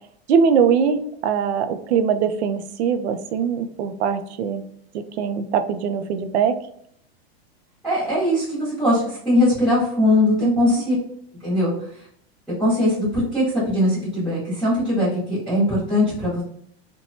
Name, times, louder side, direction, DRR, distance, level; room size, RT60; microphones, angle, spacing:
voice 1, 0.3-4.6 4.9-6.6 10.4-10.8, right 7 dB, 85° right, 9 dB, 0.5 m, -22 dB
voice 2, 7.8-10.9 11.4-11.7 12.6-16.4, left 1 dB, ahead, -15 dB, 0.9 m, -20 dB
2.9 x 2.2 x 2.6 m, 0.67 s
supercardioid pair, 175°, 32 cm